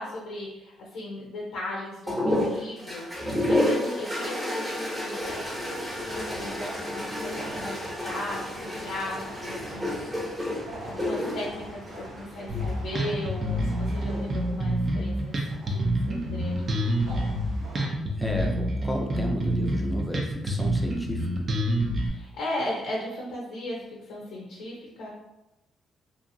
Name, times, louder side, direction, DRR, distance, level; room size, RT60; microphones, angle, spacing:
voice 1, 0.0-5.4 6.0-17.4 22.1-25.1, left 1 dB, 85° left, -3 dB, 0.6 m, -37 dB
sound 1, 2.1-12.7 13.9-14.5, left 1 dB, 10° right, 0.8 m, -30 dB
sound 2, 5.2-17.9, right 1 dB, 75° right, 0.8 m, -45 dB
Bass guitar, 12.5-22.1, equal, 40° right, 0.5 m, -27 dB
voice 2, 18.2-21.5, equal, 5° left, 0 dB, 0.5 m, -33 dB
2.7 x 2.5 x 2.6 m, 0.94 s
cardioid pair, 90°, 0 cm